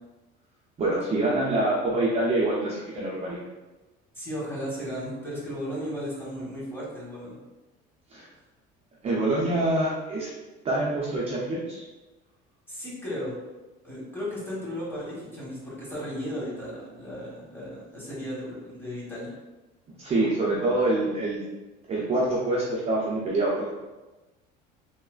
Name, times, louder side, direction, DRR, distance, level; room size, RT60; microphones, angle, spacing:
voice 1, 0.8-3.4 8.1-8.3 9.0-10.3 10.6-11.9 20.0-21.4 21.9-23.7, right 2 dB, 30° right, -5 dB, 0.5 m, -25 dB
voice 2, 4.1-7.4 12.7-13.4 13.8-19.3, equal, 10° left, -7 dB, 1.1 m, -35 dB
3.1 x 2.0 x 2.3 m, 1.1 s
cardioid pair, 120°, 20 cm